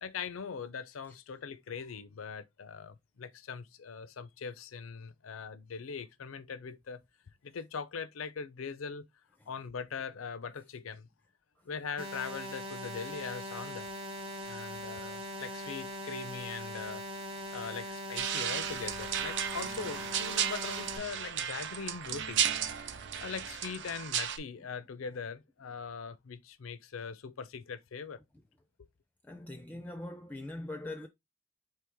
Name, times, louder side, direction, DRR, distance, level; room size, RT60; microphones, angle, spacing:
voice 1, 0.0-7.0 7.4-9.0 9.5-11.1 11.7-13.9 14.5-17.0 17.5-22.4 22.8-28.2 28.8-28.9, left 5 dB, 90° left, 0.5 m, -41 dB
sound 1, 12.0-21.0, equal, 30° right, 1.0 m, -41 dB
sound 2, 18.2-24.4, right 9 dB, 60° right, 0.5 m, -34 dB
voice 2, 29.2-31.1, left 1 dB, 10° left, 0.4 m, -42 dB
4.6 x 3.3 x 3.5 m
head